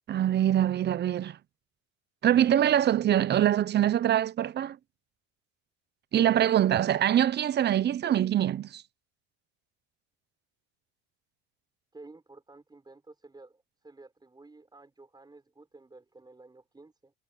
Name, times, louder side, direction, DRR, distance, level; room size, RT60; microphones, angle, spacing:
voice 1, 0.1-1.4 2.2-4.8 6.1-8.8, right 11 dB, 30° right, 0.7 m, -24 dB
voice 2, 8.0-8.5 11.9-17.1, right 3 dB, 10° right, 5.6 m, -52 dB
cardioid pair, 125°, 35 cm